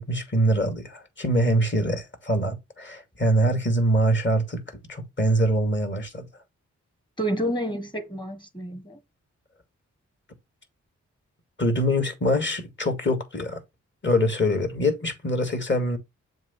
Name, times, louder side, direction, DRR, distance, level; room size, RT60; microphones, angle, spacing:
voice 1, 0.0-6.3 11.6-13.6 14.0-16.0, equal, 40° left, 2.4 m, -24 dB
voice 2, 7.2-9.0, equal, 15° left, 1.5 m, -29 dB
7.3 x 3.0 x 5.8 m
cardioid pair, 65°, 29 cm